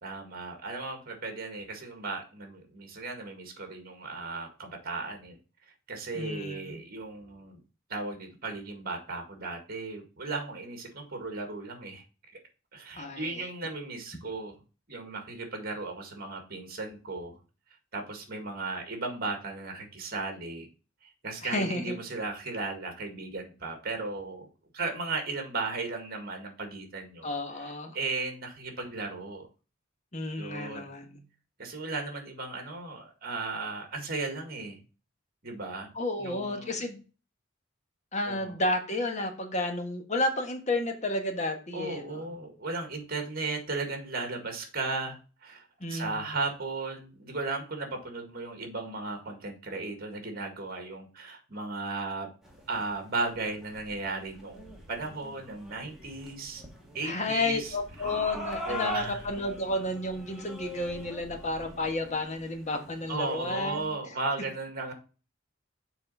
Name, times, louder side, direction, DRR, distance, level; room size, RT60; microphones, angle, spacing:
voice 1, 0.0-5.4 5.9-7.6 7.9-12.0 12.7-14.5 14.9-17.4 17.9-20.7 21.0-24.5 24.7-27.3 27.6-29.5 30.4-30.9 31.6-34.8 35.4-35.9 36.2-36.8 38.3-38.6 41.7-52.3 52.7-56.6 56.9-57.7 58.7-59.2 63.1-64.9, right 3 dB, 50° right, 5 dB, 1.9 m, -36 dB
voice 2, 6.1-6.8 13.0-13.5 21.4-22.0 27.2-28.0 30.1-31.2 35.9-37.0 38.1-42.2 45.8-46.4 57.0-63.9, left 2 dB, 35° left, 5 dB, 1.4 m, -32 dB
sound 1, 52.4-63.9, equal, ahead, 1.7 m, -43 dB
7.0 x 4.2 x 5.4 m, 0.34 s
head